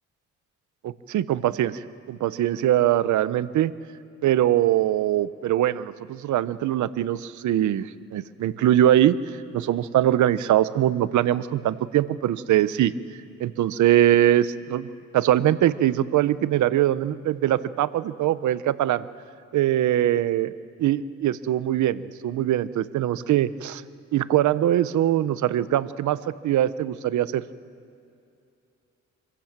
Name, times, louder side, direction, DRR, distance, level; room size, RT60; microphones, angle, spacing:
voice 1, 0.8-3.7 4.2-9.2 9.5-12.9 13.4-14.9 15.1-19.0 19.5-20.5 20.8-23.8 24.1-26.2 26.4-27.4, right 12 dB, 85° right, 15 dB, 0.8 m, -22 dB
26.0 x 16.0 x 7.5 m, 2.6 s
cardioid pair, 90°, 29 cm